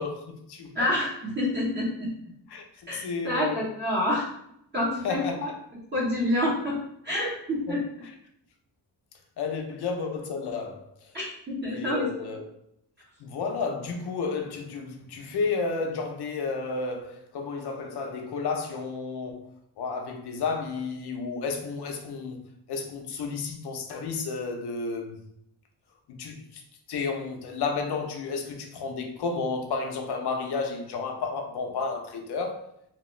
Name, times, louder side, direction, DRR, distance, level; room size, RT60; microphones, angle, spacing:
voice 1, 0.0-0.9 2.5-3.6 5.0-5.4 7.7-7.8 9.4-10.9 11.7-12.4 13.2-19.5 19.8-22.4 22.7-25.2 26.1-26.6 26.9-32.7, left 4 dB, 65° left, 0.7 m, -32 dB
voice 2, 0.7-2.1 2.9-4.2 4.7-5.5 5.9-6.8 7.0-7.8 11.1-12.3, left 1 dB, 25° right, 0.8 m, -28 dB
2.9 x 2.3 x 3.1 m
cardioid pair, 105°, 42 cm